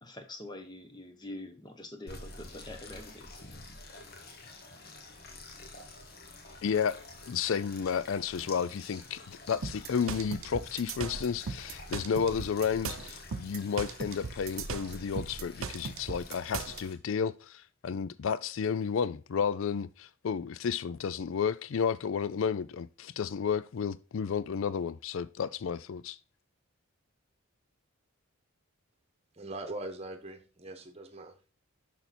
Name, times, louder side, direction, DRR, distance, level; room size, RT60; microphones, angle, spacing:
voice 1, 0.0-3.3, left 1 dB, 20° left, 1.0 m, -45 dB
sound 1, 2.1-16.9, left 2 dB, 45° left, 1.2 m, -48 dB
voice 2, 6.6-7.0 7.3-26.2, left 6 dB, 65° left, 0.4 m, -32 dB
sound 2, 9.6-16.8, right 5 dB, 70° right, 0.7 m, -38 dB
voice 3, 29.4-31.4, right 2 dB, 30° right, 1.1 m, -41 dB
7.0 x 5.9 x 4.2 m
head